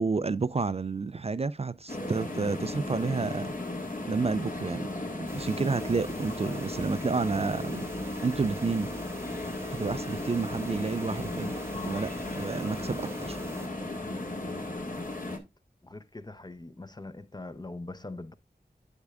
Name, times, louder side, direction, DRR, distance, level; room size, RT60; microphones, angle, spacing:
voice 1, 0.0-3.5 4.1-4.9 5.1-7.8 8.2-8.9 9.7-11.5 11.8-13.4 13.9-14.0, right 4 dB, 40° right, 0.4 m, -30 dB
sound 1, 1.9-15.4, left 2 dB, 55° left, 1.7 m, -36 dB
sound 2, 5.3-13.7, right 1 dB, 15° right, 0.8 m, -44 dB
voice 2, 15.8-18.3, left 2 dB, 25° left, 0.7 m, -42 dB
9.6 x 7.2 x 2.4 m
wide cardioid pair, 55°, 17 cm